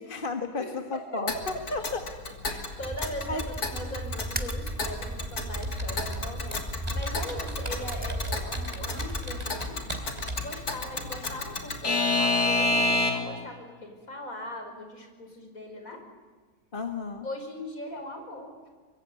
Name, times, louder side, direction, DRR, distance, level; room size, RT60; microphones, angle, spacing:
voice 1, 0.0-2.0 3.3-3.4 16.7-17.2, left 3 dB, 35° left, 6 dB, 1.7 m, -33 dB
voice 2, 0.6-1.3 2.5-9.8 10.4-16.0 17.2-18.7, left 1 dB, 60° left, 4 dB, 5.6 m, -40 dB
Alarm / Clock, 1.3-13.4, left 2 dB, 80° left, 3.4 m, -31 dB
sound 1, 2.8-9.2, right 1 dB, 5° right, 1.8 m, -36 dB
Computer keyboard, 5.6-10.5, right 1 dB, 25° right, 3.7 m, -37 dB
24.0 x 24.0 x 9.5 m, 1.5 s
omnidirectional pair, 1.6 m